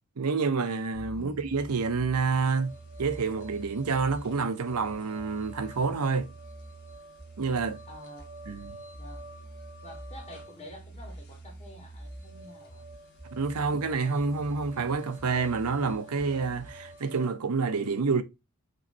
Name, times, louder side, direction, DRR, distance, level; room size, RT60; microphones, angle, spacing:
voice 1, 0.2-2.7 3.0-6.3 7.4-7.8 8.5-8.8 13.3-18.2, right 4 dB, 85° right, 0.7 m, -28 dB
sound 1, 0.9-16.9, right 2 dB, ahead, 1.2 m, -47 dB
sound 2, 2.4-17.3, right 1 dB, 50° left, 1.6 m, -50 dB
voice 2, 7.9-8.2 9.0-9.3 9.8-12.9, left 1 dB, 30° left, 1.6 m, -48 dB
5.4 x 3.1 x 2.7 m
head